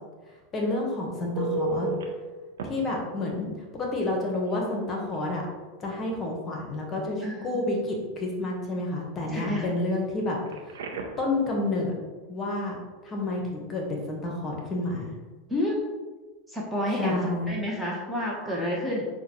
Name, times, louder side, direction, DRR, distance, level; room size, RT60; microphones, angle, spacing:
voice 1, 0.5-1.9 2.7-3.5 3.7-5.4 5.8-10.4 10.6-10.8 11.2-11.9 12.3-12.8 13.0-15.1 16.9-17.5, left 2 dB, 30° left, -1 dB, 1.0 m, -29 dB
Telephone, 1.4-2.0 2.6-2.7 4.5-4.6 5.0-5.2 10.5-11.3 18.4-18.6, right 3 dB, 75° right, 0.5 m, -32 dB
voice 2, 9.3-9.8 15.5-15.8 16.5-17.2 17.5-19.1, left 1 dB, ahead, -4 dB, 0.9 m, -29 dB
6.1 x 2.2 x 3.0 m, 1.3 s
hypercardioid pair, 90°, 0 cm